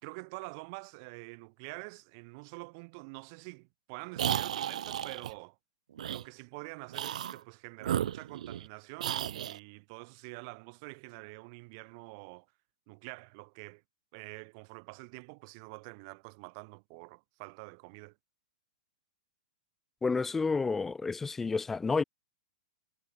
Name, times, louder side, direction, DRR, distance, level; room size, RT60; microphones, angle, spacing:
voice 1, 0.0-5.6 6.1-12.5 12.9-13.8 14.1-18.1, right 32 dB, 35° right, 3.1 m, -46 dB
sound 1, 4.2-5.3 6.0-6.2 6.9-7.4 7.8-8.7 9.0-9.6, right 10 dB, 70° right, 0.7 m, -33 dB
voice 2, 20.0-22.0, left 4 dB, 5° left, 0.3 m, -30 dB
hypercardioid pair, 165°, 4 cm